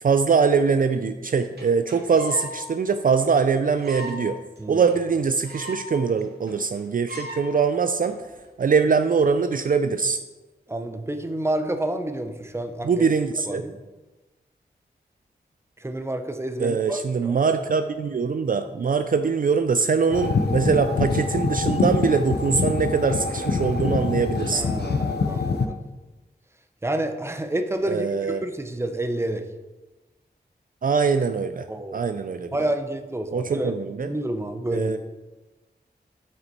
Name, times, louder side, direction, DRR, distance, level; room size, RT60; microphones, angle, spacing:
voice 1, 0.0-4.4 4.7-8.2 8.6-10.2 12.8-13.6 16.6-24.6 27.9-28.5 30.8-31.7 31.9-32.7 33.3-34.1 34.7-35.0, right 5 dB, 55° right, 9 dB, 0.4 m, -22 dB
sound 1, 1.3-1.4 1.6-1.7 1.9-2.5 2.9-3.0 3.2-3.3 3.8-4.2 4.6-4.7 4.9-5.0 5.2-5.9 6.2-6.3 6.5-6.8 7.1-7.4 8.0-8.3, equal, 70° right, 2.3 m, -37 dB
voice 2, 10.7-13.1 13.5-13.8 15.8-17.3 24.5-25.8 26.8-29.4 31.7-32.0 32.5-33.7 34.0-35.0, right 1 dB, 15° right, 7 dB, 0.7 m, -29 dB
sound 2, 20.1-25.7, left 4 dB, 75° left, 0.6 m, -25 dB
7.6 x 5.8 x 4.2 m, 1.2 s
wide cardioid pair, 75°, 17 cm